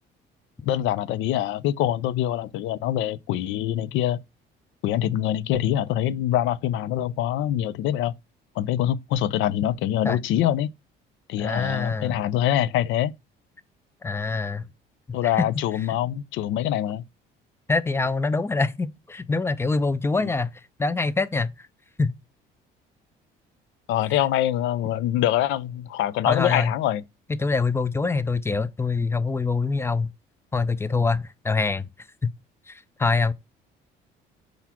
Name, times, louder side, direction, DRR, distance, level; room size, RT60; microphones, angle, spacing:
voice 1, 0.6-4.2 4.8-8.1 8.6-10.7 11.3-13.1 15.1-17.0 20.2-20.3 23.9-27.0, left 12 dB, 75° left, 0.4 m, -24 dB
voice 2, 11.4-12.2 14.0-14.7 15.2-15.4 17.7-20.5 20.8-21.7 22.0-22.2 26.3-26.7 27.4-30.1 30.5-31.9 32.2-32.3 32.7-33.3, left 4 dB, 10° left, 0.4 m, -24 dB
4.7 x 3.9 x 2.9 m
cardioid pair, 100°, 20 cm